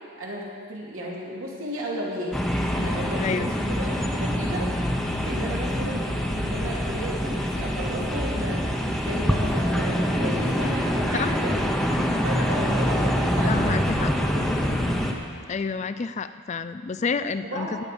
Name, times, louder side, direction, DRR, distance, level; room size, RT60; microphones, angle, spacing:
voice 1, 0.2-2.4 2.7-4.7 5.2-8.7 9.0-11.6 12.2-13.8 14.4-14.8 17.4-17.7, right 1 dB, 75° right, -4 dB, 3.0 m, -34 dB
sound 1, 2.3-15.1, equal, ahead, 0.9 m, -25 dB
voice 2, 3.2-3.5 11.1-11.3 13.5-14.1 15.5-17.8, left 5 dB, 35° left, 12 dB, 0.3 m, -29 dB
19.5 x 8.6 x 5.3 m, 2.1 s
head